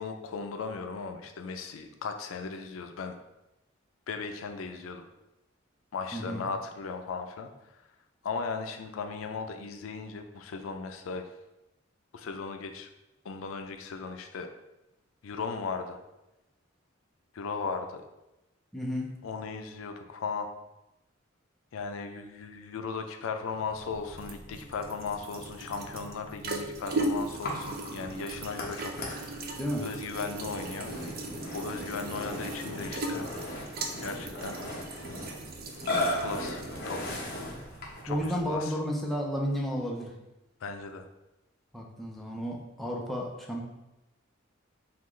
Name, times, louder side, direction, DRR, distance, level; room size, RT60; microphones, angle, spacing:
voice 1, 0.0-3.2 4.1-5.1 5.9-7.5 8.2-11.2 12.1-12.9 13.2-14.5 15.2-16.0 17.3-18.0 19.2-20.5 21.7-29.4 29.8-30.9 31.5-33.2 34.0-34.6 36.0-37.2 38.0-38.8 40.6-41.1, left 4 dB, 85° left, 5 dB, 0.4 m, -37 dB
voice 2, 6.1-6.4 18.7-19.2 29.6-29.9 38.1-40.1 41.7-43.6, equal, ahead, -2 dB, 0.6 m, -32 dB
sound 1, 23.5-38.6, right 2 dB, 50° right, 0.5 m, -38 dB
Burping eructation, 27.4-38.1, left 1 dB, 50° left, 0.9 m, -37 dB
5.6 x 2.4 x 3.1 m, 0.95 s
head